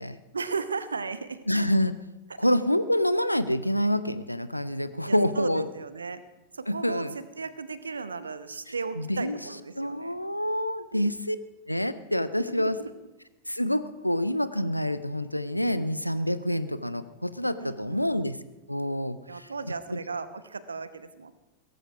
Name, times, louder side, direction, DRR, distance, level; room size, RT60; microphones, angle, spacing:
voice 1, 0.3-1.4 5.1-6.2 6.5-10.2 10.9-11.1 12.5-12.9 17.6-18.2 19.3-21.3, right 4 dB, 75° right, 14 dB, 0.9 m, -36 dB
voice 2, 1.5-1.9 2.4-5.7 6.7-7.2 9.0-9.4 9.8-11.4 11.7-12.8 13.5-18.4 18.7-19.5 19.9-20.0, left 1 dB, 90° left, 14 dB, 0.6 m, -27 dB
17.0 x 14.5 x 4.8 m, 1.0 s
figure-of-eight pair, 90°, 0 cm